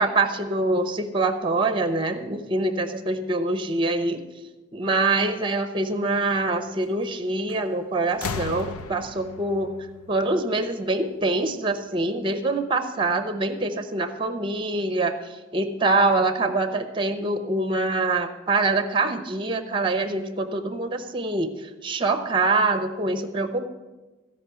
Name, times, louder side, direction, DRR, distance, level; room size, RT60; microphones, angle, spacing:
voice 1, 0.0-4.2 4.7-9.7 10.1-15.2 15.5-23.7, right 2 dB, 20° right, 8 dB, 0.8 m, -24 dB
sound 1, 7.5-7.8 8.1-10.9 12.0-12.1, left 4 dB, 85° left, 0.7 m, -36 dB
14.5 x 5.5 x 7.8 m, 1.2 s
head